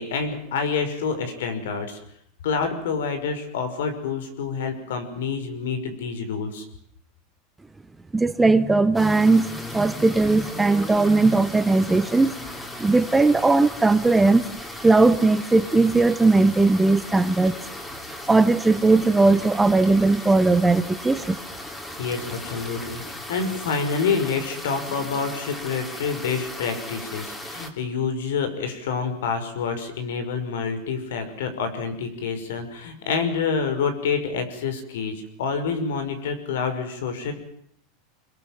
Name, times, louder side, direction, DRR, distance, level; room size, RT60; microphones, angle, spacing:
voice 1, 0.0-2.0 2.4-6.6 22.0-37.3, left 5 dB, 90° left, 5.7 m, -27 dB
voice 2, 8.1-9.5 9.7-12.3 12.8-14.5 14.8-17.6 18.3-21.4, right 3 dB, 10° right, 1.1 m, -18 dB
sound 1, 8.9-27.7, left 1 dB, 10° left, 3.4 m, -37 dB
26.5 x 22.0 x 7.6 m
supercardioid pair, 145°, 0 cm